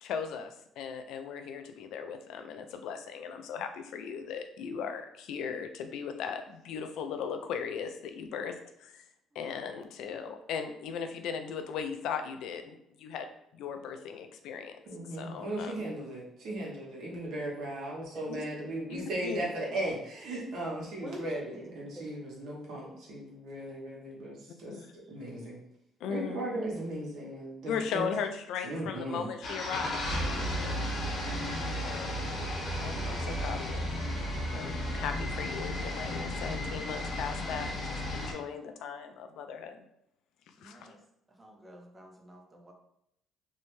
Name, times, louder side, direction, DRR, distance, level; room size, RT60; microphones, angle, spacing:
voice 1, 0.0-9.0 9.4-13.3 13.5-14.8 15.1-15.9 18.3-18.4 18.9-19.5 24.7-24.9 26.0-26.4 27.7-30.8 31.8-32.3 32.8-34.0 34.5-39.8 40.6-41.0, left 6 dB, 80° left, 7 dB, 0.3 m, -38 dB
voice 2, 14.9-24.7 25.1-25.6 26.1-28.0 28.6-29.3, right 1 dB, 70° right, -3 dB, 1.0 m, -37 dB
voice 3, 21.7-22.0 40.6-41.0 41.3-42.7, right 1 dB, 25° right, 2 dB, 0.6 m, -49 dB
sound 1, 29.4-38.3, left 1 dB, 60° left, 1.0 m, -34 dB
2.6 x 2.1 x 3.1 m, 0.77 s
supercardioid pair, 80°, 0 cm